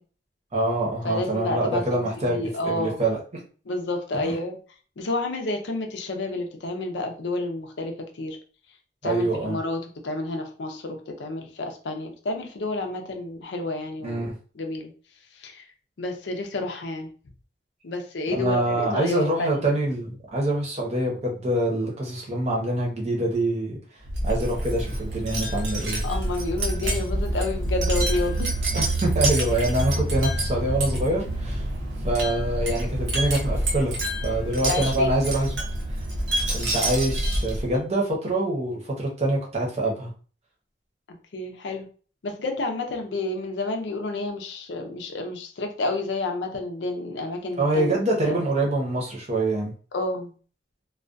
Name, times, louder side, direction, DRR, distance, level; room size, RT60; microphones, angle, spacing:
voice 1, 0.5-3.2 4.2-4.4 9.0-9.6 14.0-14.3 18.3-23.7 24.2-26.1 26.8-27.0 28.7-31.6 32.0-35.6 36.5-40.1 47.6-49.7, right 1 dB, 40° right, -1 dB, 0.8 m, -25 dB
voice 2, 1.0-3.0 3.7-4.6 5.0-8.4 9.0-14.3 14.6-14.9 15.4-15.7 16.0-17.1 17.8-19.6 26.0-28.5 34.7-35.2 41.3-41.9 42.2-47.9 48.2-48.4 49.9-50.3, left 2 dB, 85° left, 4 dB, 0.5 m, -30 dB
Wind chime, 24.0-37.8, right 1 dB, 75° right, 0.7 m, -27 dB
2.3 x 2.2 x 2.5 m, 0.40 s
head